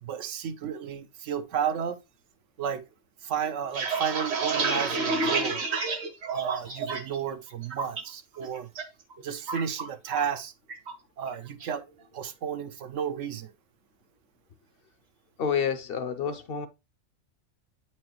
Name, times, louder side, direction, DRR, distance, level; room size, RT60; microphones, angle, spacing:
voice 1, 0.0-2.0 2.6-2.8 3.2-5.7 6.3-8.7 9.2-10.5 11.2-11.8 12.1-13.5, right 8 dB, 80° right, 1.1 m, -32 dB
sound 1, 3.5-7.2 7.5-8.0 8.4-8.8 9.1-10.4 10.7-10.9 11.3-11.7, right 4 dB, 60° right, 1.3 m, -30 dB
voice 2, 15.4-16.7, left 7 dB, 60° left, 0.7 m, -29 dB
8.6 x 4.7 x 3.0 m
omnidirectional pair, 1.3 m